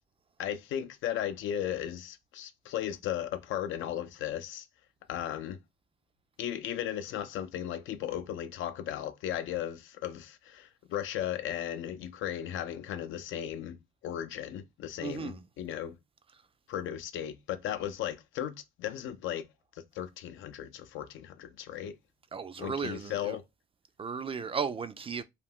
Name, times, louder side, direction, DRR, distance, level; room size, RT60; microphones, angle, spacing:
voice 1, 0.4-4.7 5.1-5.6 6.4-13.8 14.0-16.0 16.7-19.4 19.9-21.9 22.6-23.4, left 10 dB, 80° left, 0.5 m, -36 dB
voice 2, 15.0-15.4 22.3-23.4 24.0-25.2, right 6 dB, 30° right, 0.3 m, -35 dB
2.4 x 2.2 x 3.5 m
cardioid pair, 90°, 20 cm